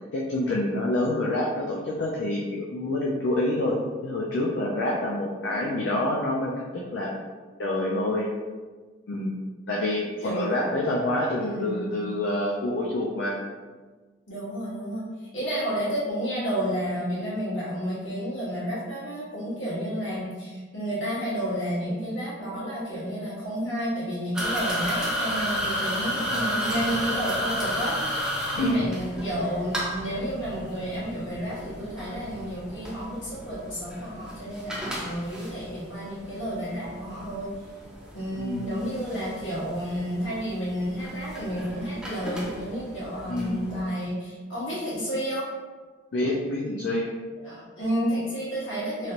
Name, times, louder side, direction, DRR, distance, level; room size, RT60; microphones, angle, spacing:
voice 1, 0.1-6.5 6.9-7.1 7.6-8.3 9.1-9.4 9.7-13.4 28.6-28.9 38.4-38.8 43.3-43.6 46.1-47.1, left 1 dB, 75° left, -3 dB, 0.4 m, -27 dB
voice 2, 11.4-11.9 14.3-15.1 15.3-28.0 28.5-37.5 38.1-45.5 47.4-49.1, equal, 90° left, -8 dB, 1.4 m, -31 dB
sound 1, 24.3-43.8, equal, 5° right, 0.4 m, -33 dB
3.1 x 2.5 x 2.9 m, 1.4 s
head